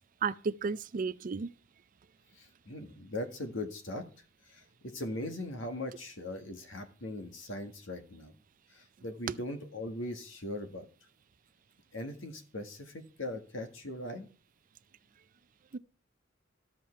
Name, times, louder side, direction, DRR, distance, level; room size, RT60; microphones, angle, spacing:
voice 1, 0.2-1.5 15.7-15.8, right 5 dB, 45° right, 0.4 m, -33 dB
voice 2, 2.4-4.0 4.5-8.3 8.7-10.9 11.9-14.3, left 1 dB, 85° left, 1.7 m, -40 dB
12.5 x 7.5 x 4.4 m
head